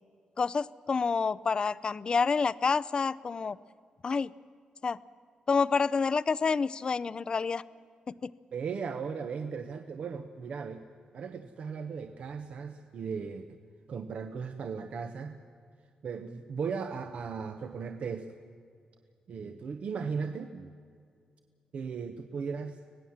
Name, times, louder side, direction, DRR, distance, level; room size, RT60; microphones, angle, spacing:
voice 1, 0.4-3.6 4.0-4.3 4.8-5.0 5.5-7.6 8.1-8.3, left 5 dB, 40° left, 18 dB, 0.5 m, -28 dB
voice 2, 8.5-10.8 11.1-13.5 13.9-15.4 16.0-18.3 19.3-20.7 21.7-22.8, right 5 dB, 60° right, 7 dB, 1.0 m, -37 dB
25.5 x 17.5 x 7.3 m, 2.2 s
cardioid pair, 100°, 2 cm